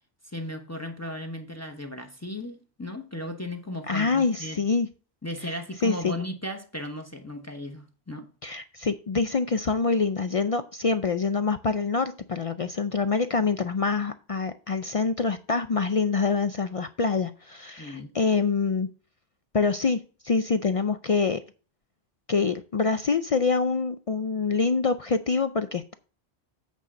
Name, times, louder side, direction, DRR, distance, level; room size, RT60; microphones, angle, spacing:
voice 1, 0.2-4.6 5.2-8.3 17.8-18.2, left 1 dB, 15° left, 0.9 m, -36 dB
voice 2, 3.9-4.9 5.5-5.6 5.8-6.2 8.4-18.9 19.5-21.4 22.3-25.9, left 4 dB, 50° left, 0.4 m, -25 dB
8.3 x 4.1 x 6.1 m
omnidirectional pair, 1.1 m